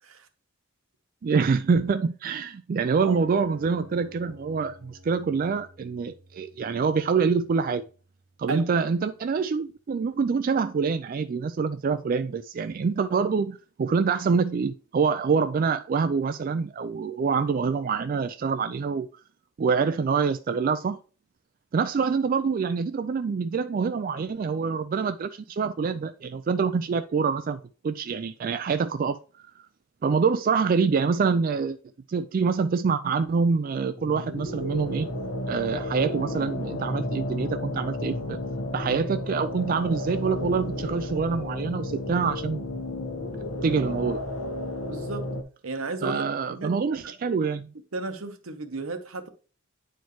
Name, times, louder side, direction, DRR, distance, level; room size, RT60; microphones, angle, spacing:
voice 1, 1.2-7.8 8.4-19.1 19.6-21.0 21.7-29.5 30.0-31.8 32.1-35.1 35.5-38.4 38.7-42.6 43.6-44.2 46.0-47.7, right 5 dB, 45° right, 0.3 m, -26 dB
sound 1, 2.9-8.9, left 3 dB, 70° right, 2.3 m, -50 dB
sound 2, 33.9-45.4, left 1 dB, 75° left, 1.1 m, -32 dB
voice 2, 44.9-45.3 45.6-46.8 47.9-49.3, right 3 dB, 90° right, 0.9 m, -33 dB
9.3 x 4.5 x 3.0 m
head